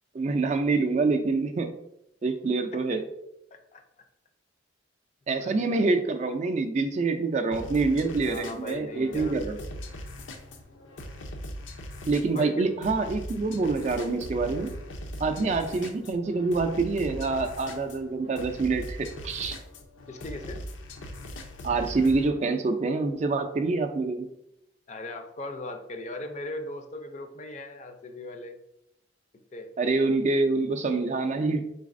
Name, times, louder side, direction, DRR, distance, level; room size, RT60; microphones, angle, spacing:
voice 1, 0.1-1.7 2.2-3.1 5.3-9.6 12.1-14.7 15.2-19.6 21.6-24.3 29.8-31.7, right 3 dB, 35° right, 6 dB, 0.3 m, -26 dB
voice 2, 3.5-3.8 5.4-5.8 8.3-9.5 12.3-12.8 15.2-15.5 20.1-20.6 24.9-28.6 29.5-29.7, left 2 dB, 35° left, 6 dB, 0.4 m, -38 dB
sound 1, 7.5-22.3, equal, 85° left, 0.6 m, -40 dB
4.0 x 4.0 x 2.5 m, 0.82 s
head